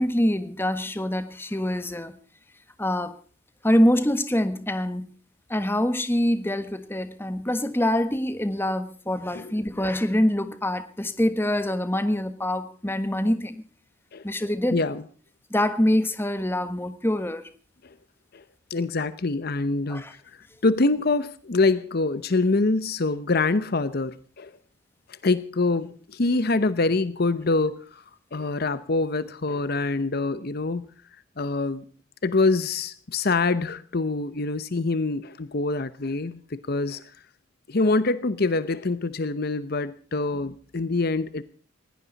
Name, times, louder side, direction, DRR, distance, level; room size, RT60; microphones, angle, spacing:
voice 1, 0.0-2.1 2.8-3.2 3.6-5.1 5.5-13.6 14.2-14.8 15.5-17.5 19.9-20.2, left 1 dB, 10° left, 1.4 m, -25 dB
voice 2, 14.7-15.0 17.8-17.9 18.3-18.4 18.7-20.0 20.6-24.5 25.2-28.0 28.3-30.9 31.4-31.9 32.2-37.0 37.7-41.4, left 3 dB, 50° left, 0.8 m, -25 dB
20.0 x 17.0 x 4.0 m
head